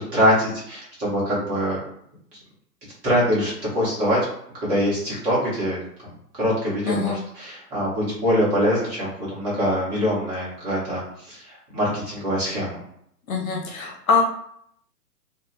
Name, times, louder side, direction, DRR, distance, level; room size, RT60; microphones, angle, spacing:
voice 1, 0.0-1.8 3.0-4.2 4.6-5.8 6.4-12.8, equal, 20° right, -7 dB, 0.9 m, -23 dB
voice 2, 6.9-7.2 13.3-14.2, left 4 dB, 55° left, 0 dB, 0.9 m, -23 dB
2.3 x 2.2 x 3.1 m, 0.69 s
figure-of-eight pair, 130°, 49 cm